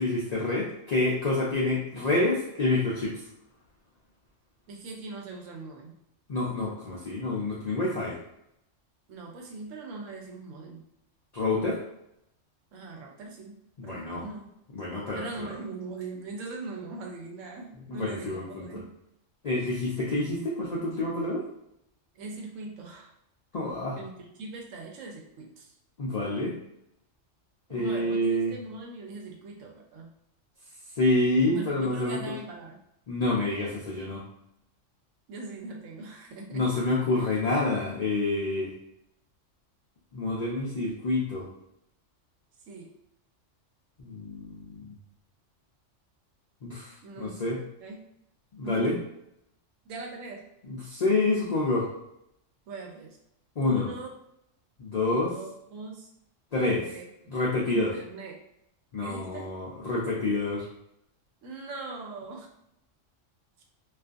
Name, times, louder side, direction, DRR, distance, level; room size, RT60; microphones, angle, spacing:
voice 1, 0.0-3.2 6.3-8.2 11.3-11.8 13.8-14.3 14.8-15.2 17.9-18.6 19.4-21.4 23.5-24.0 26.0-26.6 27.7-28.5 31.0-32.2 33.1-34.2 36.5-38.7 40.1-41.5 44.0-44.7 46.6-47.6 48.6-49.0 50.7-51.9 53.6-53.9 54.8-55.3 56.5-56.8 57.3-57.9 58.9-60.7, left 2 dB, 70° left, -5 dB, 0.4 m, -27 dB
voice 2, 4.7-6.0 9.1-10.8 12.7-14.5 15.1-18.9 19.6-19.7 22.1-23.1 24.0-25.7 27.7-30.1 31.5-32.8 35.3-36.7 42.7-42.9 47.0-48.0 48.6-49.0 49.9-50.5 52.7-53.2 53.6-54.1 55.1-56.1 56.8-57.3 57.6-58.4 59.0-59.5 61.4-62.5, right 3 dB, 85° right, 1 dB, 1.0 m, -41 dB
2.5 x 2.3 x 2.5 m, 0.80 s
omnidirectional pair, 1.3 m